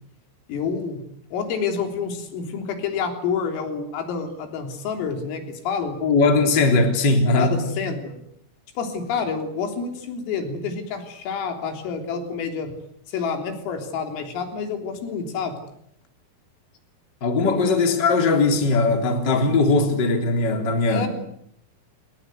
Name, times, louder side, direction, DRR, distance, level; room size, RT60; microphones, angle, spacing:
voice 1, 0.5-1.0 1.3-6.0 7.4-8.2 8.8-12.7 13.1-15.5 17.4-17.6 20.9-21.1, left 5 dB, 75° left, 6.1 m, -28 dB
voice 2, 6.0-7.6 17.2-21.1, left 3 dB, 25° left, 3.2 m, -19 dB
29.0 x 20.5 x 8.0 m
omnidirectional pair, 6.0 m